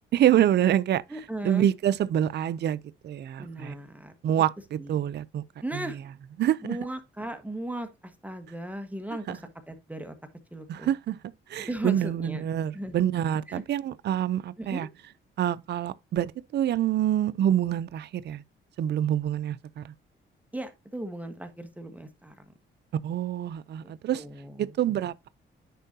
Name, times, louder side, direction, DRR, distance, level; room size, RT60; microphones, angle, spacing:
voice 1, 0.1-1.0 1.4-3.7 4.2-5.4 5.7-5.9 6.4-6.8 9.3-9.4 10.7-11.2 11.5-14.9 15.4-18.4 18.8-19.9 23.0-24.2 24.6-25.3, right 11 dB, 60° right, 0.6 m, -26 dB
voice 2, 1.1-1.7 3.4-4.1 4.8-4.9 5.6-6.0 6.6-9.4 9.7-10.1 10.5-10.9 11.6-12.4 12.7-13.0 13.5-13.6 14.6-14.9 20.5-22.4 23.8-24.6, right 1 dB, 5° right, 1.5 m, -37 dB
10.5 x 4.5 x 2.8 m
cardioid pair, 90°, 20 cm